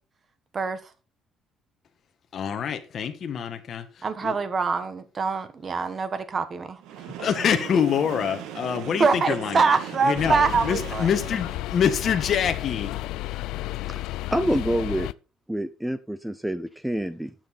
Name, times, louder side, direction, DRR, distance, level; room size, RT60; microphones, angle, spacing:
voice 1, 2.3-3.8 4.2-4.3 7.2-9.6 10.0-10.4 10.6-12.9, left 7 dB, 40° left, 1.4 m, -25 dB
voice 2, 4.0-6.8 9.0-11.1, right 4 dB, 30° right, 1.3 m, -24 dB
Train, 6.8-11.8, right 10 dB, 85° right, 1.6 m, -38 dB
sound 1, 10.2-15.1, left 17 dB, 80° left, 0.4 m, -32 dB
voice 3, 14.3-15.1 15.5-17.3, right 1 dB, 5° right, 0.6 m, -27 dB
12.0 x 7.8 x 4.2 m
cardioid pair, 150°, 0 cm